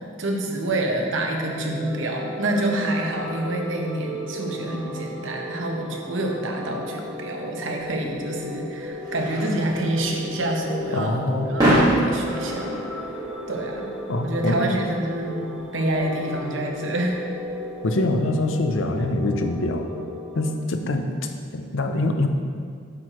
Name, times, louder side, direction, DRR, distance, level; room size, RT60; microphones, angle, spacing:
voice 1, 0.0-12.8 13.5-13.9 14.2-17.1, right 1 dB, 70° right, 1 dB, 0.9 m, -27 dB
sound 1, 1.2-20.5, equal, 5° right, 0.7 m, -35 dB
sound 2, 7.7-19.0, right 1 dB, 20° right, 1.7 m, -29 dB
voice 2, 10.9-11.5 14.1-14.6 17.8-19.9 20.3-22.3, left 2 dB, 75° left, 6 dB, 0.6 m, -24 dB
8.5 x 6.4 x 3.0 m, 2.2 s
head